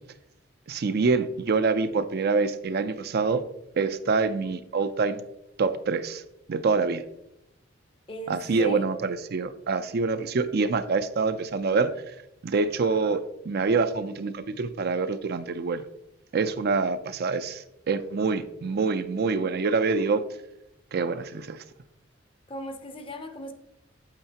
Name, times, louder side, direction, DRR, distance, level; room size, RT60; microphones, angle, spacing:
voice 1, 0.7-3.4 3.8-5.2 5.6-6.2 6.5-7.0 8.3-12.1 12.4-15.8 16.3-20.2 20.9-21.6, right 4 dB, 55° right, 0.5 m, -26 dB
voice 2, 8.1-8.8 22.5-23.5, equal, 25° left, 0.7 m, -36 dB
8.8 x 7.9 x 2.8 m
head